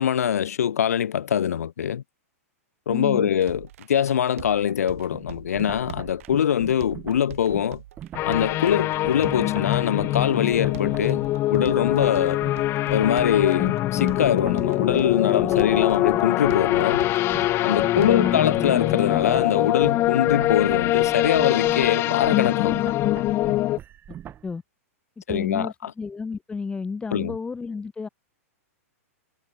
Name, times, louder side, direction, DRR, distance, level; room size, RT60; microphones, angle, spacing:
voice 1, 0.0-2.0 2.9-7.8 8.3-12.4 12.9-17.1 17.6-22.8 25.3-25.9 27.1-27.3, left 9 dB, 80° left, 0.5 m, -23 dB
voice 2, 2.9-3.3 17.9-18.4 24.4-24.6 25.3-28.1, left 4 dB, 10° left, 2.1 m, -31 dB
sound 1, 3.4-18.4, right 14 dB, 60° right, 3.8 m, -43 dB
sound 2, 5.1-10.3 10.5-24.5, right 10 dB, 25° right, 3.9 m, -41 dB
sound 3, 8.1-23.8, left 16 dB, 30° left, 0.6 m, -23 dB
hypercardioid pair, 125°, 8 cm